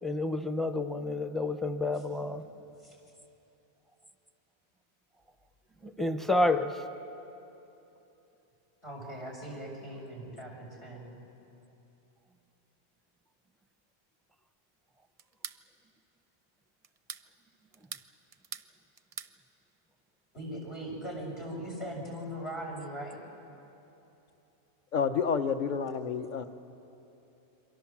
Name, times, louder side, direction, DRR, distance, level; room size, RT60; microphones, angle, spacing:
voice 1, 0.0-2.5 5.8-6.8, left 2 dB, ahead, 8 dB, 0.7 m, -29 dB
voice 2, 8.8-11.1 20.3-23.2, equal, 80° left, -1 dB, 6.2 m, -40 dB
sound 1, 15.2-15.6 16.8-17.3 17.7-18.7 19.0-19.4, right 6 dB, 40° right, 0.6 m, -43 dB
voice 3, 24.9-26.4, left 6 dB, 45° left, 9 dB, 1.0 m, -29 dB
28.0 x 23.5 x 7.4 m, 3.0 s
omnidirectional pair, 1.1 m